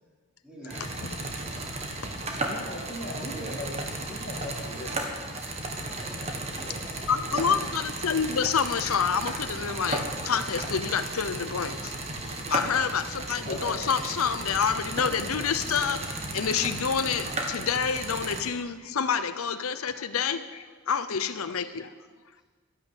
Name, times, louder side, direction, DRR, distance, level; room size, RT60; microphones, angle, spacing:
voice 1, 0.4-1.1 3.0-3.7 4.8-4.9 6.0-7.7 8.3-8.7, right 1 dB, 5° right, -6 dB, 4.5 m, -44 dB
sound 1, 0.7-18.4, right 2 dB, 30° right, 1.6 m, -34 dB
voice 2, 2.5-3.7 4.1-4.9 13.5-13.8, left 1 dB, 40° left, 0 dB, 1.8 m, -38 dB
voice 3, 7.1-11.9 12.3-16.0 16.3-21.9, left 6 dB, 90° left, 11 dB, 0.7 m, -28 dB
12.0 x 11.0 x 8.1 m, 1.4 s
head